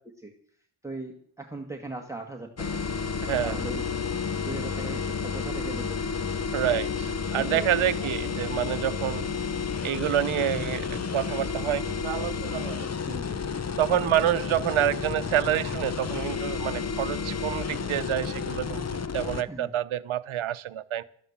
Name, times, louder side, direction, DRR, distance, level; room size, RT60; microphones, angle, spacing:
voice 1, 0.8-2.8 3.4-3.9 4.3-6.0 7.3-7.7 8.6-8.7 13.0-13.4 19.5-19.7, right 2 dB, 5° right, 1.8 m, -39 dB
sound 1, 2.6-19.4, left 5 dB, 35° left, 0.8 m, -31 dB
voice 2, 6.5-9.3 9.8-12.9 13.8-21.0, right 11 dB, 80° right, 0.8 m, -28 dB
13.5 x 11.0 x 7.3 m
cardioid pair, 70°, 48 cm